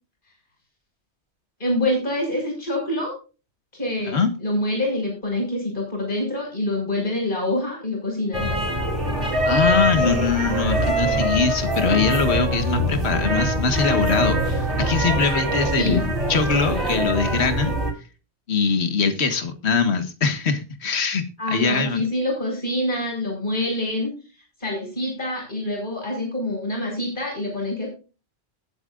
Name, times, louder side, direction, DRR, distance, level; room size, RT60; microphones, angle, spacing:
voice 1, 1.6-3.2 3.7-8.5 15.8-16.1 21.4-24.1 24.6-27.9, left 1 dB, 45° left, 0 dB, 6.5 m, -26 dB
sound 1, 8.3-17.9, equal, 50° right, 3.5 m, -23 dB
voice 2, 9.4-17.7 18.5-21.2 21.5-22.0, left 5 dB, 65° left, 8 dB, 1.8 m, -22 dB
19.5 x 8.5 x 2.5 m, 0.32 s
omnidirectional pair, 1.2 m